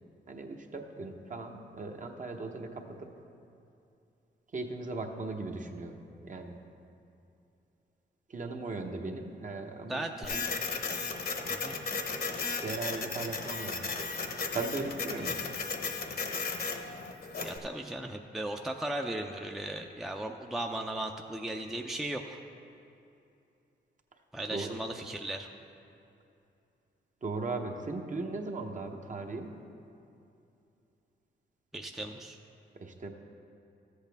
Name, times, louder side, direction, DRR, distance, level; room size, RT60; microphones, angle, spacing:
voice 1, 0.3-3.1 4.5-6.6 8.3-10.0 10.3-10.5 12.6-13.9 14.5-15.5 24.5-24.7 27.2-29.5 32.7-33.1, right 3 dB, 40° right, 3 dB, 1.0 m, -38 dB
voice 2, 9.9-10.4 11.5-11.8 15.3-15.4 17.4-22.4 24.3-25.5 31.7-32.4, right 1 dB, ahead, 2 dB, 0.5 m, -37 dB
Printer, 10.2-17.6, left 4 dB, 50° left, 1.0 m, -35 dB
13.0 x 8.1 x 3.5 m, 2.7 s
cardioid pair, 65°, 19 cm